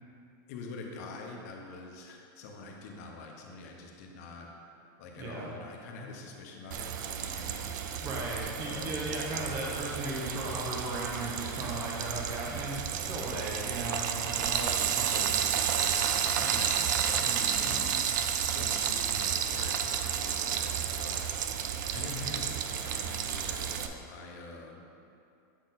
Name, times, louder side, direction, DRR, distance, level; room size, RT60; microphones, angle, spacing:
voice 1, 0.5-4.5 5.0-7.7 8.4-9.0 14.6-14.9 16.4-18.0 18.5-21.2 21.9-24.9, left 3 dB, 50° left, 0 dB, 0.9 m, -45 dB
voice 2, 5.2-5.5 8.0-16.9 17.1-17.8, right 1 dB, 25° right, -2 dB, 0.9 m, -37 dB
Frying (food), 6.7-23.9, right 8 dB, 65° right, 0.4 m, -31 dB
7.9 x 4.3 x 4.1 m, 2.6 s
supercardioid pair, 175°, 11 cm